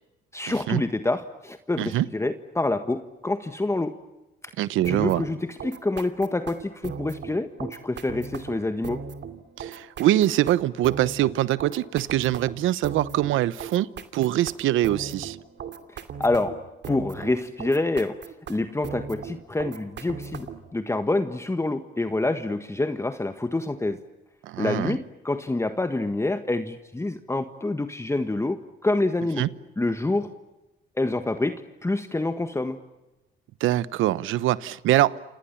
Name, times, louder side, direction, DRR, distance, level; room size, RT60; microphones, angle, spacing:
voice 1, 0.3-3.9 4.9-9.0 15.9-16.6 16.9-18.2 18.5-20.5 20.7-24.0 24.6-29.5 29.8-30.3 31.0-32.8, left 2 dB, 15° left, 9 dB, 1.6 m, -27 dB
voice 2, 4.6-5.2 9.6-13.9 14.1-15.4 24.4-25.0 29.4-29.5 33.6-35.2, right 14 dB, 90° right, 18 dB, 1.0 m, -23 dB
sound 1, 4.8-20.7, right 6 dB, 60° right, 2.7 m, -38 dB
29.0 x 27.5 x 7.2 m, 1.0 s
cardioid pair, 90°, 20 cm